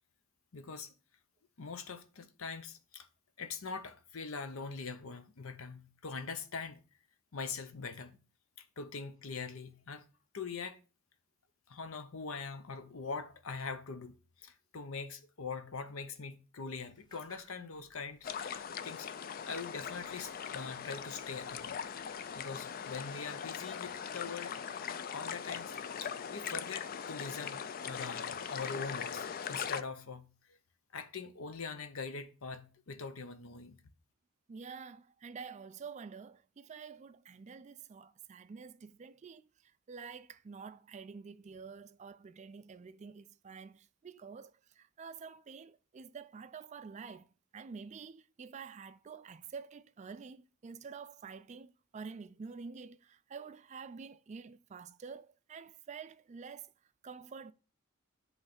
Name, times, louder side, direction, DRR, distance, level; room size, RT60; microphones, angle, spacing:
voice 1, 0.5-0.9 1.6-3.1 3.4-6.8 7.3-8.2 8.6-10.0 10.3-10.8 11.7-19.1 19.4-21.8 22.3-24.5 25.1-25.7 26.0-30.6 30.9-33.8, left 5 dB, 70° left, 0.8 m, -43 dB
sound 1, 16.8-23.2, right 1 dB, 20° left, 1.7 m, -67 dB
sound 2, 18.2-29.8, left 7 dB, 40° left, 0.3 m, -40 dB
voice 2, 34.5-47.3 47.5-57.5, right 5 dB, 30° right, 0.3 m, -48 dB
7.9 x 3.2 x 5.7 m
head